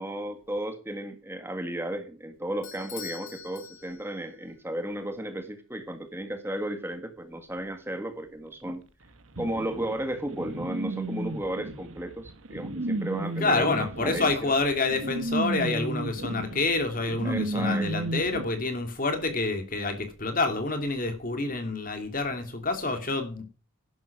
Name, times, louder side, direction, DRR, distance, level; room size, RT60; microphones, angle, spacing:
voice 1, 0.0-8.8 9.4-14.5 17.2-18.1, right 1 dB, 10° right, 1.6 m, -34 dB
Bell / Doorbell, 2.6-4.3, left 8 dB, 65° left, 4.6 m, -43 dB
sound 1, 9.4-18.5, right 1 dB, 75° right, 1.6 m, -33 dB
voice 2, 13.4-23.4, left 3 dB, 40° left, 2.9 m, -28 dB
11.5 x 11.0 x 6.0 m
head